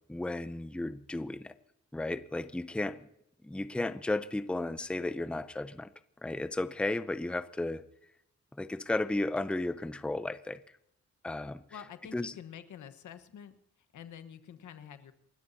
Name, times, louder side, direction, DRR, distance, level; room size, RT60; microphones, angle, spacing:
voice 1, 0.1-1.6 1.9-3.0 3.4-5.9 6.2-7.9 8.6-10.6 11.2-11.6 12.1-12.3, left 2 dB, 5° left, 0.5 m, -34 dB
voice 2, 11.7-15.1, left 8 dB, 90° left, 1.3 m, -48 dB
28.5 x 13.0 x 2.8 m
wide cardioid pair, 140°, 29 cm